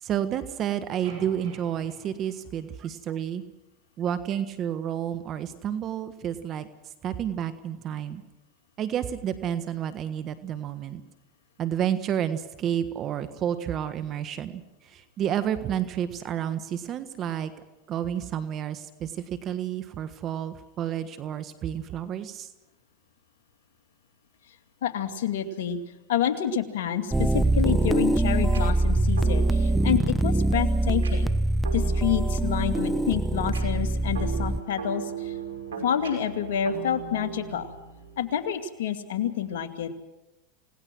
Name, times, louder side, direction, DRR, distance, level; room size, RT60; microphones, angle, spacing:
voice 1, 0.0-3.4 4.0-8.2 8.8-11.0 11.6-17.5 17.9-22.5, right 9 dB, 40° right, 11 dB, 1.5 m, -30 dB
sound 1, 1.0-3.3, right 4 dB, 60° right, 7.4 m, -49 dB
voice 2, 24.8-25.8 26.1-31.3 31.7-35.3 35.8-37.7 38.2-39.9, left 9 dB, 75° left, 6 dB, 2.5 m, -28 dB
sound 2, 27.1-34.6, right 2 dB, 5° right, 0.8 m, -24 dB
sound 3, 28.5-38.5, right 6 dB, 90° right, 5.5 m, -39 dB
28.5 x 18.5 x 6.3 m, 0.99 s
hypercardioid pair, 105°, 0 cm